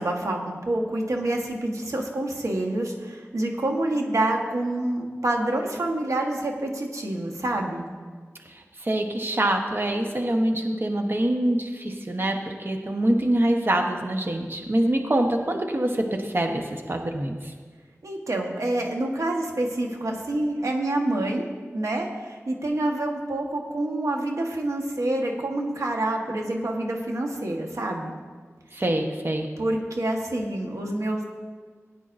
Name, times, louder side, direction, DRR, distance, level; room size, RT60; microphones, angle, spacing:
voice 1, 0.0-7.8 18.0-21.5 21.7-28.1 28.7-28.8 29.6-31.2, right 1 dB, 85° right, 1 dB, 1.3 m, -27 dB
voice 2, 8.8-17.5 28.7-29.5, right 1 dB, 45° right, 3 dB, 1.1 m, -25 dB
17.0 x 9.9 x 2.6 m, 1.5 s
wide cardioid pair, 45°, 5 cm